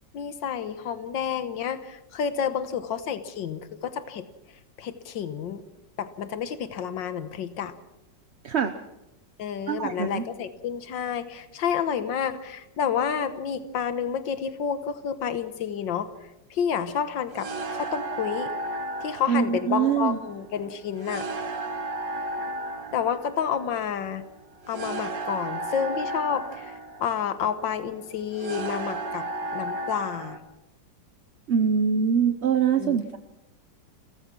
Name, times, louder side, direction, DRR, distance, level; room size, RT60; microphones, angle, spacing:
voice 1, 0.1-4.2 4.8-5.6 6.0-7.7 9.4-16.1 16.5-18.5 19.0-21.3 22.9-24.2 24.7-26.7 27.0-29.3 29.5-30.4 32.7-33.0, left 7 dB, 90° left, 12 dB, 1.8 m, -29 dB
voice 2, 9.7-10.2 19.3-20.2 31.5-33.2, right 7 dB, 50° right, 9 dB, 0.9 m, -23 dB
sound 1, 17.3-30.4, right 2 dB, 75° right, 2.5 m, -34 dB
29.5 x 15.5 x 6.1 m, 0.92 s
omnidirectional pair, 2.0 m